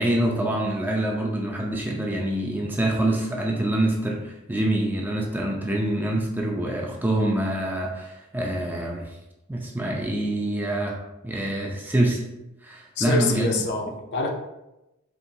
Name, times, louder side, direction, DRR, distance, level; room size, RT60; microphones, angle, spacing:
voice 1, 0.0-9.0 9.5-11.0 11.2-12.2 12.6-13.5, right 1 dB, 10° right, 0 dB, 0.4 m, -25 dB
voice 2, 13.0-14.3, left 3 dB, 50° left, 3 dB, 0.5 m, -25 dB
4.5 x 2.9 x 2.7 m, 0.94 s
head